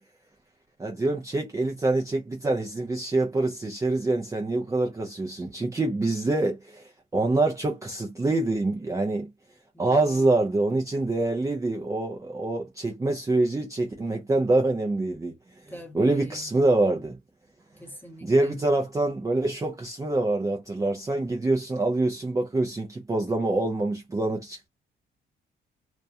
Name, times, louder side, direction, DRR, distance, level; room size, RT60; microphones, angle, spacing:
voice 1, 0.8-9.3 9.8-15.4 15.9-17.2 18.2-24.7, right 2 dB, 15° right, 0.4 m, -25 dB
voice 2, 9.7-10.3 15.7-16.5 17.8-18.6, left 1 dB, 10° left, 0.9 m, -43 dB
2.3 x 2.0 x 2.6 m
cardioid pair, 90°, 20 cm